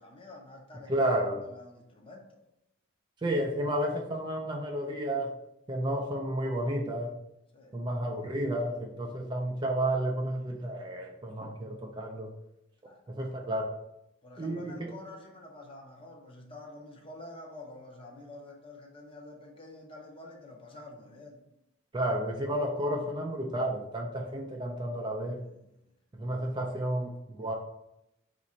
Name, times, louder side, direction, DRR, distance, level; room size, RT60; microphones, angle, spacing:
voice 1, 0.0-2.4 7.5-7.8 12.8-13.0 13.3-13.5 14.2-21.4 25.4-25.6, left 2 dB, 25° left, 1 dB, 0.6 m, -48 dB
voice 2, 0.9-1.5 3.2-5.3 5.7-7.1 7.7-12.3 13.1-13.8 14.4-14.9 21.9-25.4 26.1-27.5, right 1 dB, 20° right, 1 dB, 0.3 m, -31 dB
4.0 x 2.5 x 4.2 m, 0.85 s
head